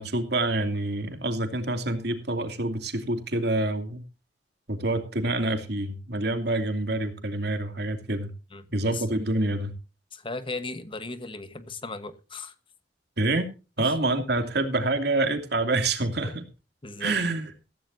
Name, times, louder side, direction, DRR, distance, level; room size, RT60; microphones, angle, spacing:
voice 1, 0.0-4.0 4.7-8.3 8.7-9.7 13.2-13.5 13.8-16.4 17.0-17.5, right 2 dB, 65° right, 7 dB, 2.6 m, -27 dB
voice 2, 8.5-9.1 10.1-12.5 13.8-13.9 16.0-16.4 16.8-17.2, left 3 dB, 30° left, 12 dB, 1.2 m, -37 dB
15.5 x 15.0 x 2.7 m, 0.31 s
head